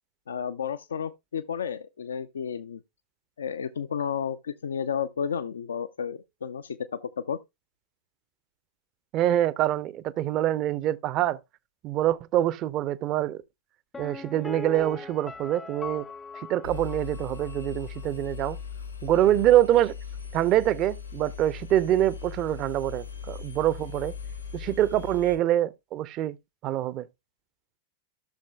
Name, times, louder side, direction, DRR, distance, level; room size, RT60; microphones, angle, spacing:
voice 1, 0.3-2.8 3.4-7.4, left 7 dB, 70° left, 0.4 m, -32 dB
voice 2, 9.1-11.4 11.8-13.4 14.0-16.1 16.5-18.6 19.0-19.9 20.3-24.1 24.5-26.4 26.6-27.1, right 13 dB, 35° right, 0.5 m, -25 dB
Piano, 13.9-17.7 18.0-18.1, left 3 dB, 15° left, 0.5 m, -40 dB
Engine, 16.6-25.4, left 6 dB, 85° left, 2.1 m, -39 dB
14.0 x 6.6 x 2.2 m
figure-of-eight pair, 90°, 0 cm